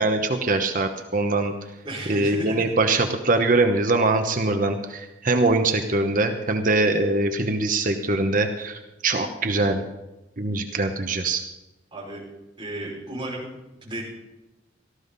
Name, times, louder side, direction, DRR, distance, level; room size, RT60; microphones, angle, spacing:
voice 1, 0.0-1.5 2.1-9.8 10.4-11.4, right 2 dB, 45° right, 6 dB, 1.0 m, -23 dB
voice 2, 1.8-2.6 11.9-12.2 12.6-13.5 13.8-14.0, right 1 dB, 25° right, -4 dB, 5.6 m, -34 dB
18.0 x 14.0 x 4.1 m, 1.0 s
head